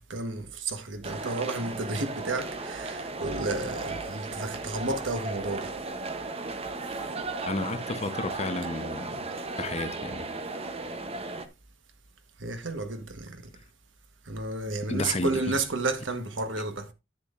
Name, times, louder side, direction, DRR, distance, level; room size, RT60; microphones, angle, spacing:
voice 1, 0.0-5.7 12.4-13.5 14.3-16.9, right 3 dB, 80° right, 1.2 m, -32 dB
sound 1, 1.0-11.5, right 3 dB, 30° right, 0.8 m, -36 dB
voice 2, 7.5-9.3 9.6-10.3 14.9-15.6, left 2 dB, 35° left, 0.8 m, -32 dB
10.0 x 8.4 x 2.5 m
head